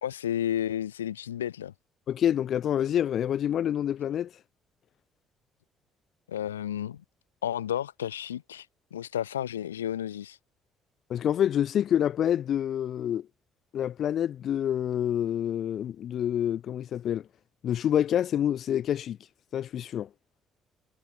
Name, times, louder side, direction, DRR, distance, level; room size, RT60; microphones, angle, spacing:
voice 1, 0.0-1.7 6.3-7.0 7.4-8.7 8.9-10.4, left 10 dB, 80° left, 2.4 m, -32 dB
voice 2, 2.1-4.3 11.1-13.3 13.7-17.3 17.6-19.2 19.5-20.1, left 10 dB, 55° left, 1.1 m, -27 dB
figure-of-eight pair, 45°, 0 cm